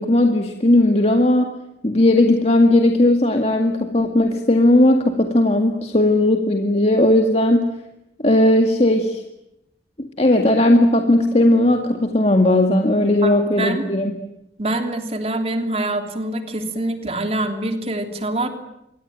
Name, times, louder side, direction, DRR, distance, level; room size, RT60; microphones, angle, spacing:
voice 1, 0.0-1.5 1.8-7.7 8.2-9.2 10.0-14.1, left 1 dB, 35° left, 4 dB, 2.1 m, -17 dB
voice 2, 13.2-13.8 14.6-18.5, right 1 dB, 35° right, 6 dB, 3.2 m, -25 dB
27.0 x 23.5 x 9.3 m, 0.86 s
head